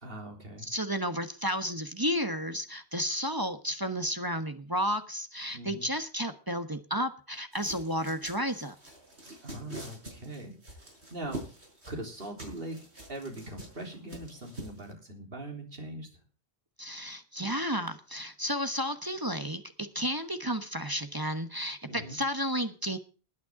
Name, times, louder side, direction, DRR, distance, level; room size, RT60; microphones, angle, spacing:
voice 1, 0.0-0.7 5.5-5.9 9.4-10.6 11.1-11.5 11.9-12.8 13.1-16.2 21.9-22.2, right 1 dB, 60° right, 2 dB, 3.9 m, -41 dB
voice 2, 0.6-8.8 16.8-23.0, equal, 20° right, 8 dB, 1.2 m, -32 dB
sound 1, 7.5-14.9, right 1 dB, 85° right, 6.5 m, -46 dB
20.5 x 9.4 x 3.7 m, 0.36 s
omnidirectional pair, 1.1 m